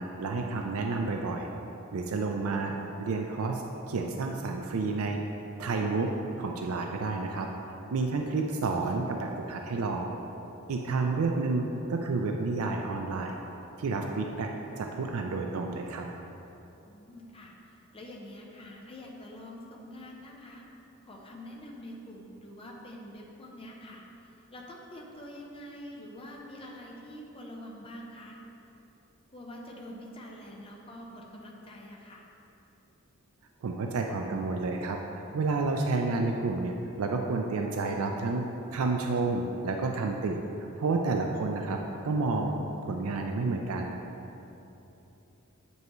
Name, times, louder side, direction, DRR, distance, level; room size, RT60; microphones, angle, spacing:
voice 1, 0.0-1.5 1.9-5.2 5.6-6.1 6.4-7.5 7.9-10.2 10.7-13.4 13.8-14.5 14.8-16.1 33.6-38.4 38.7-40.4 40.8-41.8 42.0-42.5 42.8-44.0, right 3 dB, 85° right, 2 dB, 0.4 m, -30 dB
voice 2, 8.2-8.7 16.8-17.5 17.9-20.7 21.1-24.0 24.5-28.4 29.3-32.2, left 1 dB, 25° left, -1 dB, 0.8 m, -46 dB
7.8 x 5.4 x 3.1 m, 3.0 s
head